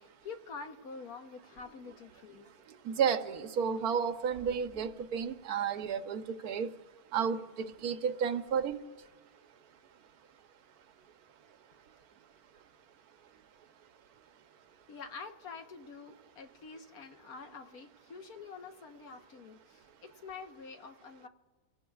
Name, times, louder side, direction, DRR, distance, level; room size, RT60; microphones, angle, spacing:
voice 1, 0.0-2.5 14.9-21.3, left 5 dB, 70° left, 5 dB, 1.5 m, -47 dB
voice 2, 2.8-6.7 7.1-8.8, right 7 dB, 75° right, 9 dB, 1.3 m, -32 dB
27.0 x 18.5 x 2.4 m, 1.4 s
omnidirectional pair, 1.6 m